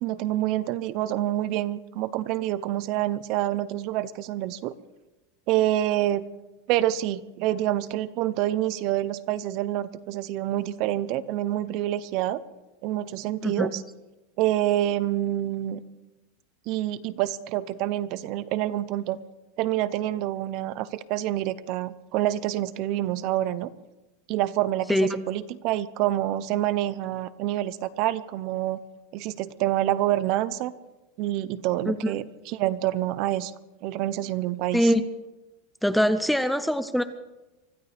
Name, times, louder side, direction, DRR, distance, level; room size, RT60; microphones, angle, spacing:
voice 1, 0.0-4.7 5.5-6.2 6.7-12.4 12.8-13.8 14.4-15.8 16.7-19.2 19.6-23.7 24.3-28.8 29.1-30.7 31.2-33.5 33.8-34.9, right 13 dB, 35° right, 16 dB, 0.7 m, -27 dB
voice 2, 35.8-37.0, equal, ahead, 11 dB, 0.5 m, -23 dB
24.5 x 15.5 x 3.5 m, 1.0 s
supercardioid pair, 175°, 0 cm